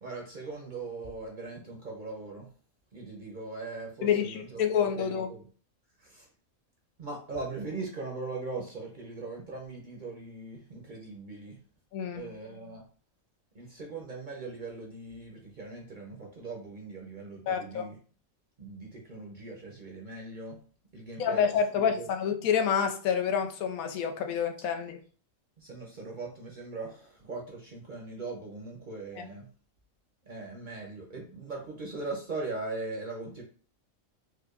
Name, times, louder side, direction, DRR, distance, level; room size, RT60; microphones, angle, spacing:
voice 1, 0.0-2.5 2.9-5.4 6.0-6.3 7.0-11.6 12.1-12.8 13.5-18.0 18.6-20.6 20.9-21.4 21.7-22.1 25.6-29.5 30.2-33.4, right 3 dB, 50° right, 0 dB, 0.6 m, -40 dB
voice 2, 4.0-5.3 11.9-12.2 17.5-17.9 21.2-25.0 29.2-29.3, left 7 dB, 90° left, 6 dB, 1.0 m, -28 dB
4.7 x 2.2 x 2.4 m, 0.41 s
omnidirectional pair, 1.4 m